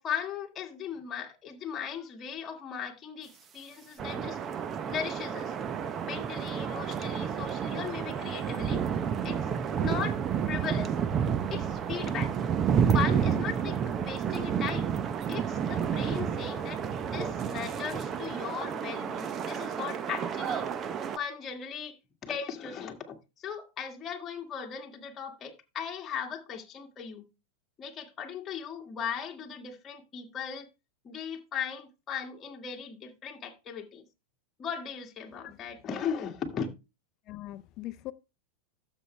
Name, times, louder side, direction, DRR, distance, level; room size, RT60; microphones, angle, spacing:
voice 1, 0.0-4.4 4.9-5.5 6.0-9.0 9.2-9.4 9.7-10.2 10.5-10.9 11.5-12.3 12.9-14.9 15.3-20.7 21.2-22.0 22.2-27.2 27.8-30.7 31.0-34.0 34.6-36.7, left 7 dB, 25° left, 1.9 m, -37 dB
sound 1, 4.0-21.2, right 7 dB, 25° right, 0.7 m, -30 dB
voice 2, 35.4-35.8 37.3-38.1, left 16 dB, 40° left, 0.5 m, -42 dB
12.0 x 7.3 x 3.2 m
supercardioid pair, 135°, 0 cm